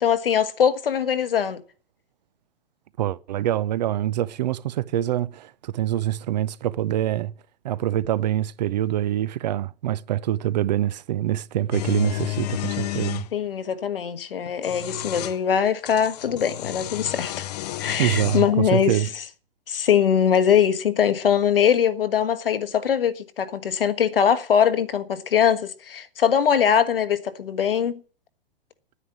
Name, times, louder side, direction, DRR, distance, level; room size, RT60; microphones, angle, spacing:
voice 1, 0.0-1.6 13.3-17.4 17.8-19.2 19.7-28.0, left 8 dB, 65° left, 1.4 m, -22 dB
voice 2, 3.0-7.3 7.6-13.3 18.0-19.1, right 12 dB, 45° right, 0.6 m, -25 dB
sound 1, 11.7-13.3 14.4-15.4 15.8-18.5, left 14 dB, 40° left, 0.7 m, -31 dB
9.8 x 9.4 x 9.0 m
figure-of-eight pair, 115°, 30 cm